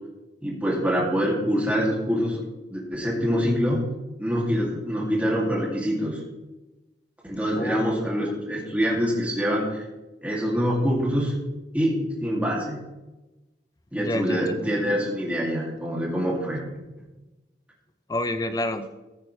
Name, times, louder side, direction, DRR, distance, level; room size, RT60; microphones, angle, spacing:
voice 1, 0.4-2.4 2.7-3.8 4.2-6.2 7.3-9.8 10.2-11.3 11.7-12.8 13.9-16.6, equal, 10° right, -3 dB, 2.6 m, -25 dB
voice 2, 7.5-8.3 14.0-14.7 18.1-18.9, left 1 dB, 20° left, 9 dB, 0.7 m, -29 dB
15.0 x 9.1 x 3.3 m, 1.1 s
head